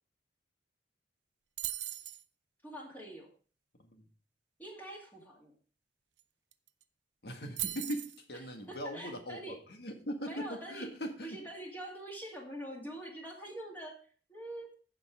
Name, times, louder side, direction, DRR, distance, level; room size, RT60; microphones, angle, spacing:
sound 1, 1.6-2.2 6.2-6.3 6.5-6.8 7.6-8.2, right 14 dB, 85° right, 0.6 m, -38 dB
voice 1, 2.6-3.3 4.6-5.5 8.3-9.6 10.2-10.9 11.2-14.0 14.3-14.7, right 1 dB, 10° left, 2.3 m, -45 dB
voice 2, 7.2-11.4, equal, 65° left, 1.8 m, -40 dB
15.5 x 5.5 x 3.6 m
head